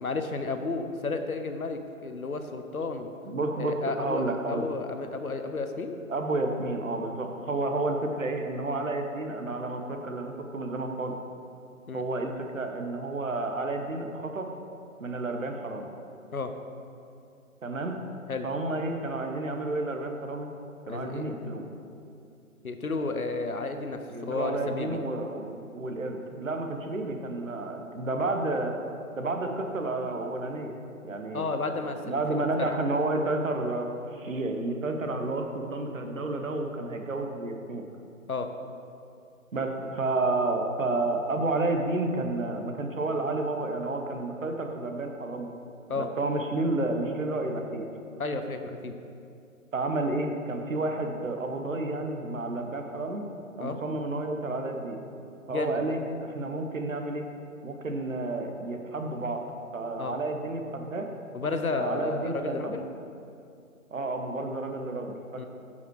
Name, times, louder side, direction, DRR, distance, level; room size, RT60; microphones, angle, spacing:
voice 1, 0.0-3.1 3.6-6.0 11.9-12.0 16.3-16.5 18.3-18.5 20.9-21.3 22.6-25.0 31.3-32.7 38.3-38.5 45.9-46.1 48.2-49.0 53.6-53.8 55.5-55.9 60.0-60.2 61.3-62.8 65.4-65.5, left 3 dB, 80° left, 7 dB, 0.9 m, -32 dB
voice 2, 3.2-4.6 6.1-11.1 11.9-14.5 15.0-15.9 17.6-18.0 18.4-20.5 20.9-21.6 24.1-28.7 29.2-30.7 31.0-31.5 32.0-33.9 34.1-37.8 39.5-45.5 46.0-47.9 49.7-53.2 53.6-55.0 55.5-57.2 57.6-59.4 59.7-61.1 61.8-62.8 63.9-65.5, right 2 dB, 65° right, 4 dB, 1.1 m, -31 dB
9.3 x 5.7 x 4.7 m, 2.5 s
figure-of-eight pair, 135°, 43 cm